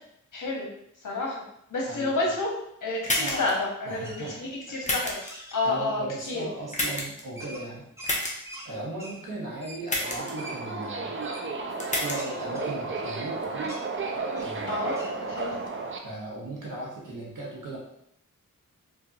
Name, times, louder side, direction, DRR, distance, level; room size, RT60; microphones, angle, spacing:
voice 1, 0.3-0.7 1.0-1.4 1.7-5.1 5.5-6.4 14.7-15.0 15.4-15.5, left 2 dB, 70° left, -3 dB, 0.9 m, -29 dB
voice 2, 1.9-2.3 3.2-4.9 5.6-7.8 8.6-11.1 12.0-13.7 14.4-14.9 15.2-15.6 16.0-17.8, right 2 dB, 75° right, -4 dB, 1.0 m, -37 dB
sound 1, 3.0-3.5 4.8-5.3 6.7-7.2 8.0-8.3 9.9-10.3 11.8-12.2, left 1 dB, 25° left, 0.7 m, -28 dB
sound 2, 3.2-3.6 4.0-4.5 5.0-5.6 7.4-8.7 9.0-9.2 9.6-9.8 10.4-10.6 11.2-11.4 12.1-13.3 13.6-13.8 14.3-14.6 14.9-15.1, right 1 dB, 10° right, 0.8 m, -43 dB
Subway metro underground, 10.0-16.0, right 3 dB, 40° right, 0.4 m, -33 dB
2.8 x 2.5 x 2.6 m, 0.75 s
cardioid pair, 50°, 32 cm